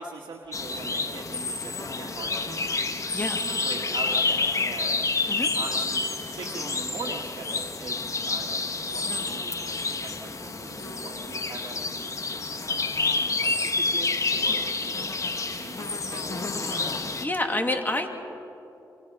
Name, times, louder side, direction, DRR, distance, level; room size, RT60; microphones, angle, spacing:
voice 1, 0.0-2.7 3.6-5.0 5.6-6.1 6.3-12.0 12.6-15.2 15.5-16.9, right 4 dB, 75° right, -2 dB, 1.9 m, -41 dB
sound 1, 0.5-17.3, left 3 dB, 40° left, 1.7 m, -29 dB
voice 2, 17.2-18.1, left 2 dB, 25° left, 4 dB, 2.7 m, -28 dB
29.5 x 25.5 x 5.6 m, 2.9 s
cardioid pair, 65°, 8 cm